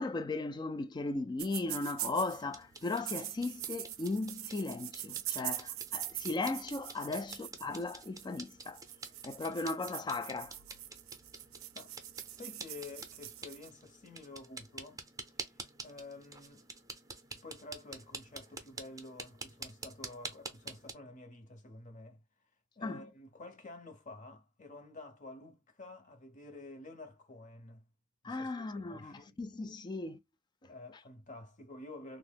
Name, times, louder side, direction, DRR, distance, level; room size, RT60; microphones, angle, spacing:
voice 1, 0.0-8.8 9.2-10.5 22.8-23.1 28.2-30.2, left 3 dB, 20° left, 0.3 m, -37 dB
sound 1, 1.4-2.4 2.8-13.7, right 13 dB, 85° right, 0.4 m, -43 dB
sound 2, 2.1-20.9, right 3 dB, 15° right, 0.6 m, -49 dB
voice 2, 12.3-15.0 15.8-16.6 17.3-22.2 22.8-27.8 28.2-29.4 30.6-32.2, left 2 dB, 40° left, 0.8 m, -50 dB
2.9 x 2.0 x 3.5 m
head